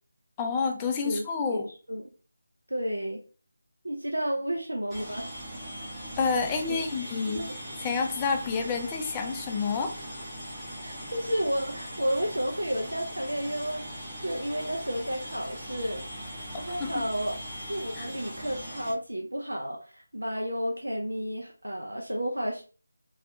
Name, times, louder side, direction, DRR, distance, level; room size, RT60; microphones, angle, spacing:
voice 1, 0.4-1.7 6.2-7.5 7.8-10.0 16.8-17.0 18.0-18.1, left 5 dB, 15° left, 3 dB, 0.3 m, -29 dB
voice 2, 1.5-2.1 2.7-3.2 3.8-5.3 6.4-7.4 10.8-17.4 17.7-22.6, equal, 80° right, 0 dB, 0.4 m, -32 dB
sound 1, 4.9-18.9, equal, 15° right, 0.7 m, -40 dB
2.3 x 2.1 x 2.6 m, 0.37 s
figure-of-eight pair, 160°, 0 cm